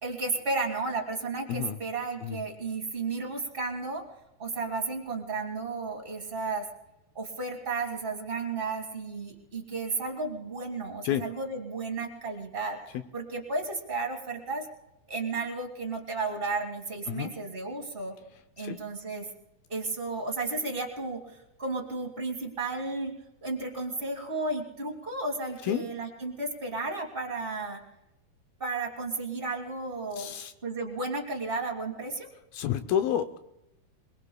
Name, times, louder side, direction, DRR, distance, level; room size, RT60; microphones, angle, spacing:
voice 1, 0.0-4.0 4.4-6.7 7.1-12.8 13.1-14.7 15.1-18.2 18.6-19.3 19.7-23.1 23.4-27.8 28.6-30.3 30.6-32.3, right 3 dB, 75° right, 1 dB, 0.5 m, -33 dB
voice 2, 30.2-30.5 32.5-33.4, left 10 dB, 80° left, 8 dB, 2.4 m, -29 dB
27.5 x 21.0 x 2.2 m, 0.89 s
omnidirectional pair, 4.3 m